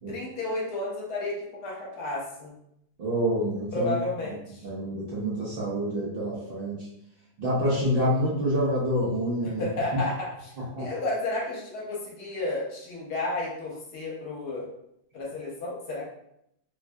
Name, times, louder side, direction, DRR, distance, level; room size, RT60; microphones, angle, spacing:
voice 1, 0.1-2.5 3.7-4.7 9.4-14.7 15.1-16.0, left 2 dB, 65° left, -3 dB, 1.3 m, -32 dB
voice 2, 3.0-3.9 4.6-6.8 7.4-9.6 10.7-10.9, equal, 60° right, -6 dB, 0.5 m, -27 dB
3.2 x 2.6 x 2.2 m, 0.76 s
omnidirectional pair, 1.8 m